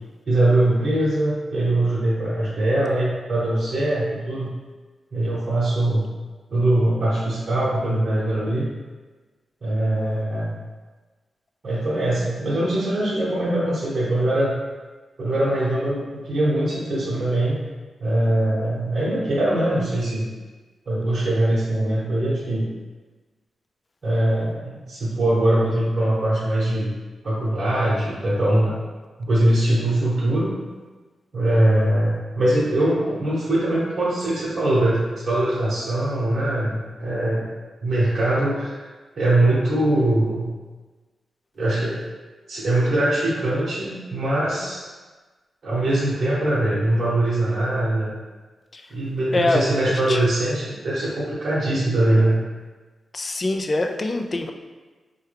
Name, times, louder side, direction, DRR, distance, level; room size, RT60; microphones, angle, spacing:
voice 1, 0.3-4.5 5.1-6.1 6.5-8.6 9.6-10.6 11.6-14.5 15.2-17.6 18.0-20.2 20.9-22.7 24.0-26.9 27.2-28.8 29.2-30.5 31.3-37.5 37.8-38.9 39.1-40.5 41.5-42.0 42.5-44.9 45.6-48.1 48.9-52.4, right 1 dB, 50° right, -8 dB, 1.0 m, -22 dB
voice 2, 49.3-50.2 53.1-54.5, left 2 dB, 35° left, 5 dB, 0.3 m, -24 dB
4.5 x 2.2 x 3.3 m, 1.3 s
wide cardioid pair, 115°, 0 cm